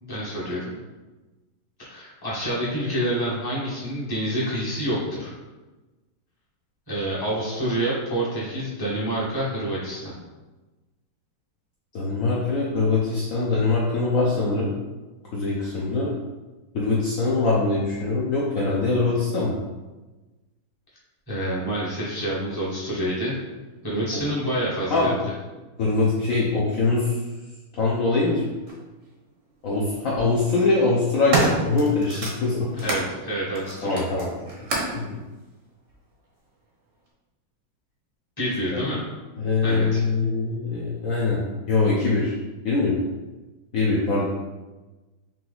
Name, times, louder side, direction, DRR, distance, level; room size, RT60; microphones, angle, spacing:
voice 1, 0.0-0.7 1.8-5.3 6.9-10.1 21.3-23.3 23.8-25.2 32.8-34.0 38.4-39.0 39.6-40.0, right 1 dB, 15° left, -8 dB, 1.0 m, -27 dB
voice 2, 11.9-14.7 15.3-16.1 16.7-19.6 24.1-24.2 24.9-25.1 25.8-27.2 27.8-28.4 29.6-32.7 33.8-34.3 34.9-35.2 39.4-41.4 41.7-42.3 42.6-43.0 43.7-44.2, left 3 dB, 75° left, -6 dB, 0.7 m, -23 dB
sound 1, 28.7-28.8 29.9-30.2 30.8-33.1 33.5-35.0 35.9-36.0, right 2 dB, 60° right, 0.8 m, -28 dB
3.8 x 3.0 x 3.9 m, 1.2 s
omnidirectional pair, 2.3 m